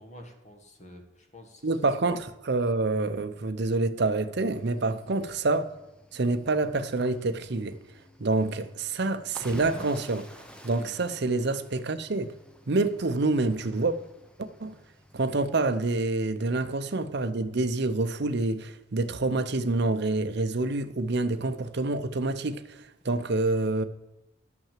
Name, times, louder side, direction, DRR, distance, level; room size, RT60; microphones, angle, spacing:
voice 1, 0.0-1.8 4.8-5.0 10.8-11.0 15.1-15.3 23.0-23.2, equal, 35° left, 1.6 m, -50 dB
voice 2, 1.6-5.7 6.1-7.8 8.2-10.3 10.6-12.3 12.7-14.0 14.4-14.7 15.1-23.8, right 2 dB, 55° right, 0.7 m, -27 dB
Cricket / Waves surf, 4.5-15.7, equal, 5° left, 0.7 m, -50 dB
11.5 x 6.0 x 7.4 m
head